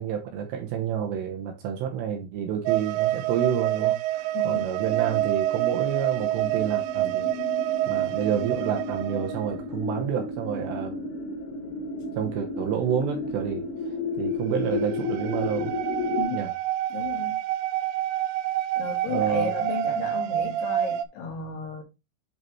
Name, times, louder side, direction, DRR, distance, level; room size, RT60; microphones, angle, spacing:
voice 1, 0.0-7.3 7.9-11.0 12.2-13.7 14.2-15.7 16.3-16.5 19.1-19.5, right 8 dB, 75° right, 2.8 m, -29 dB
sound 1, 2.7-9.6 14.8-21.1, right 13 dB, 90° right, 2.5 m, -27 dB
voice 2, 4.3-4.6 16.1-16.5 16.9-17.4 18.8-21.8, left 5 dB, 65° left, 3.3 m, -34 dB
sound 2, 4.6-16.2, left 3 dB, 85° left, 4.3 m, -33 dB
11.0 x 4.0 x 2.9 m
omnidirectional pair, 5.7 m